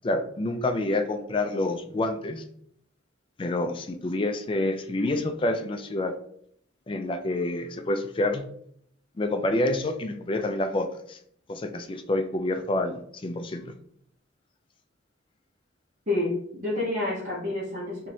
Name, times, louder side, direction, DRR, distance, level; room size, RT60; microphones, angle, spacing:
voice 1, 0.0-2.4 3.4-6.2 6.9-8.4 9.2-11.2 11.5-13.7, left 2 dB, 25° left, 6 dB, 0.3 m, -28 dB
voice 2, 16.1-18.1, left 2 dB, 40° right, -9 dB, 1.2 m, -29 dB
4.5 x 3.0 x 2.7 m, 0.67 s
head